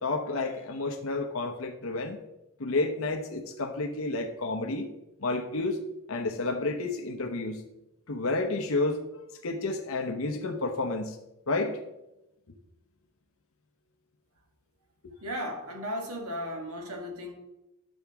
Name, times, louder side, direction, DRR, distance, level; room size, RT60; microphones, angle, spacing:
voice 1, 0.0-2.2 2.6-4.9 5.2-5.8 6.1-7.6 8.1-9.0 9.4-11.2 11.5-11.8, left 2 dB, 70° left, 4 dB, 0.8 m, -30 dB
voice 2, 15.2-17.3, equal, 90° right, 2 dB, 1.6 m, -35 dB
10.5 x 7.0 x 3.5 m, 0.94 s
head